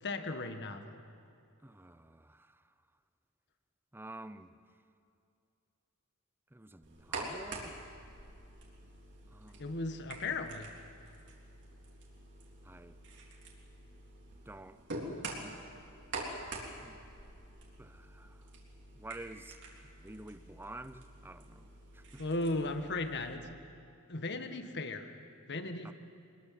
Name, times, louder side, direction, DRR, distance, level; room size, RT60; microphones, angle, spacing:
voice 1, 0.0-1.0 9.6-10.7 22.2-23.6 24.1-25.1 25.5-25.9, left 2 dB, 55° left, 7 dB, 1.5 m, -36 dB
voice 2, 1.6-2.6 3.9-4.5 6.5-7.8 9.3-9.7 12.6-13.0 14.5-14.8 15.4-15.6 16.8-17.0 17.8-18.4 18.9-22.2 25.8-25.9, right 2 dB, 10° right, 12 dB, 0.7 m, -49 dB
sound 1, 6.8-23.3, right 2 dB, 55° right, 3.6 m, -46 dB
24.5 x 21.0 x 7.5 m, 2.5 s
head